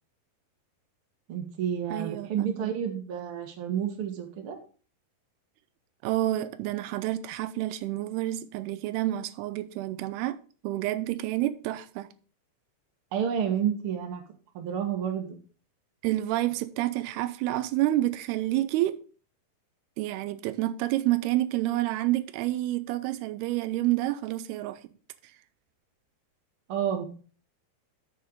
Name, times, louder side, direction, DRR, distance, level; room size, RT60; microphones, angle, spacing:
voice 1, 1.3-4.6 13.1-14.2 14.5-15.4 26.7-27.1, right 8 dB, 55° right, 1.6 m, -30 dB
voice 2, 1.9-2.3 2.6-2.7 6.0-10.4 10.6-12.1 16.0-19.0 20.0-24.8, right 15 dB, 90° right, 2.6 m, -29 dB
6.7 x 6.5 x 5.2 m
omnidirectional pair, 4.5 m